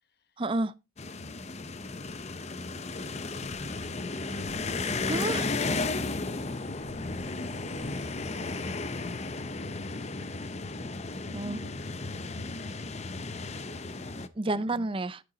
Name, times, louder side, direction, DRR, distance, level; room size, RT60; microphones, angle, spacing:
voice 1, 0.4-0.7 5.1-5.5 11.3-11.6 14.4-15.2, right 2 dB, 25° right, 0.5 m, -30 dB
voice 2, 1.0-1.9 6.6-8.9 9.2-10.2 11.2-13.5 13.7-14.2, left 1 dB, 50° left, 1.3 m, -51 dB
sound 1, 1.0-14.3, left 3 dB, 30° left, 0.7 m, -34 dB
sound 2, 8.1-8.2, equal, 80° left, 7.5 m, -52 dB
11.0 x 8.9 x 3.9 m
head